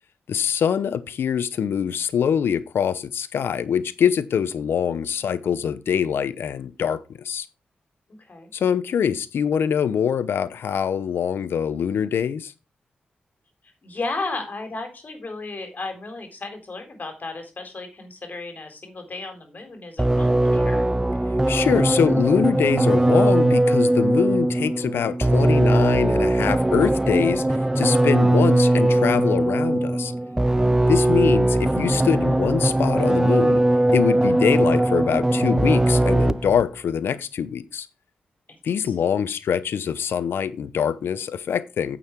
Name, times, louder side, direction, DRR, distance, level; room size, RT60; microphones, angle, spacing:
voice 1, 0.3-7.5 8.5-12.5 21.5-30.1 30.9-33.6 33.9-37.9 38.6-42.0, left 8 dB, 80° left, 0.7 m, -24 dB
voice 2, 13.8-21.0 30.8-30.9 38.8-38.9, left 3 dB, 50° left, 3.8 m, -34 dB
sound 1, 20.0-36.6, right 1 dB, 15° right, 0.5 m, -20 dB
9.1 x 6.9 x 4.6 m
supercardioid pair, 45°, 4 cm